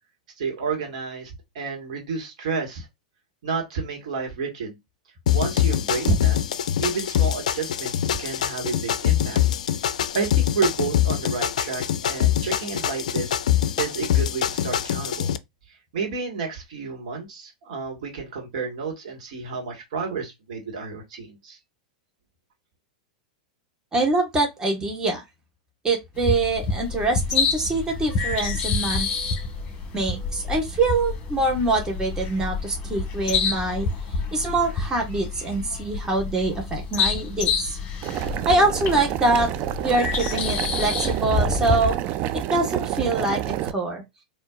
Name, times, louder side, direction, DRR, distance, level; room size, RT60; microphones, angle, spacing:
voice 1, 0.4-2.9 3.4-4.8 5.3-6.4 6.8-9.4 10.1-13.4 13.8-15.3 15.9-21.6, right 4 dB, 65° right, 1.6 m, -30 dB
sound 1, 5.3-15.4, left 11 dB, 70° left, 0.4 m, -24 dB
voice 2, 23.9-25.2 25.8-29.1 29.9-33.9 34.3-37.8 38.5-39.5 39.8-41.9 42.5-44.0, right 2 dB, 15° right, 1.4 m, -24 dB
sound 2, 26.2-41.9, left 4 dB, 35° left, 1.4 m, -28 dB
Boiling, 38.0-43.7, right 13 dB, 45° right, 0.4 m, -28 dB
4.3 x 2.7 x 2.4 m
hypercardioid pair, 100°, 4 cm